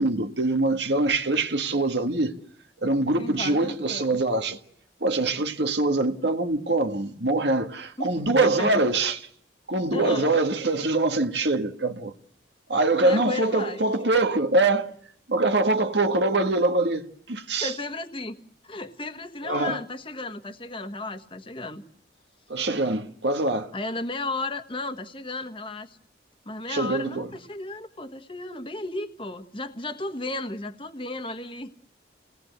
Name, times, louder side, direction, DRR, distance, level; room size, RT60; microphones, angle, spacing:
voice 1, 0.0-2.3 2.8-4.6 5.0-9.3 9.7-12.1 12.7-14.9 15.3-17.7 19.4-19.8 22.5-23.7 26.7-27.3, right 2 dB, 70° right, 1.7 m, -24 dB
voice 2, 3.2-4.2 8.0-8.1 8.4-8.7 9.9-10.4 13.0-13.8 17.6-18.4 18.6-21.8 23.7-26.0 26.4-31.7, left 2 dB, 30° left, 1.4 m, -34 dB
29.0 x 19.5 x 8.1 m
head